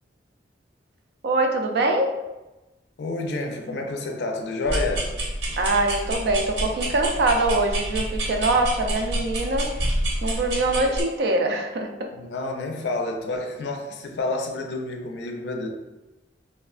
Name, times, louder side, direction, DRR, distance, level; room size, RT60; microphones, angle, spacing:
voice 1, 1.2-2.2 5.6-9.8 10.2-12.1, right 2 dB, 65° right, 4 dB, 0.3 m, -23 dB
voice 2, 3.0-5.1 12.1-15.7, left 2 dB, 70° left, 2 dB, 0.4 m, -29 dB
sound 1, 4.6-11.0, right 1 dB, 80° right, 0.8 m, -28 dB
3.2 x 2.1 x 2.3 m, 1.0 s
head